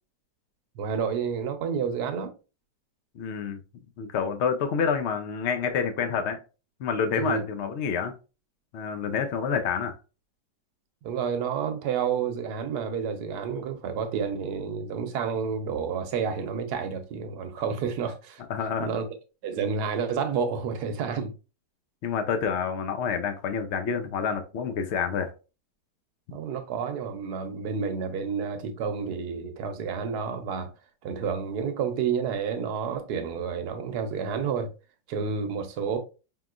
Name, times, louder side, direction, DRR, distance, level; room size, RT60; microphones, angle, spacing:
voice 1, 0.8-2.3 7.1-7.4 11.0-18.4 18.8-19.1 19.4-21.3 26.3-30.7 31.0-34.7 35.1-36.0, right 6 dB, 70° right, 1.2 m, -30 dB
voice 2, 3.1-3.6 4.0-6.4 6.8-8.1 8.7-9.9 18.5-18.9 22.0-25.3, left 6 dB, 70° left, 0.6 m, -28 dB
5.4 x 3.0 x 2.4 m
omnidirectional pair, 1.9 m